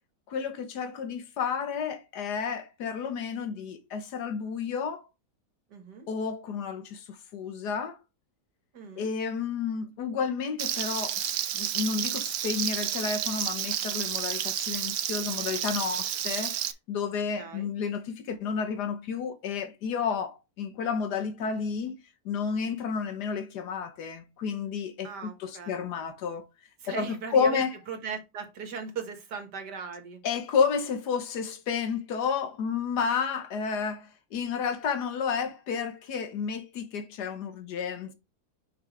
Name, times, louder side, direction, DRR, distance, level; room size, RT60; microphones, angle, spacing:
voice 1, 0.3-5.0 6.1-8.0 9.0-16.6 16.9-26.5 26.9-27.1 27.3-27.7 30.2-38.1, left 6 dB, 80° left, 1.6 m, -31 dB
voice 2, 5.7-6.1 8.7-9.1 17.3-17.7 25.0-25.8 26.8-30.2, right 5 dB, 85° right, 2.2 m, -39 dB
Frying (food), 10.6-16.7, right 10 dB, 70° right, 1.1 m, -31 dB
6.0 x 5.7 x 3.3 m
omnidirectional pair, 1.8 m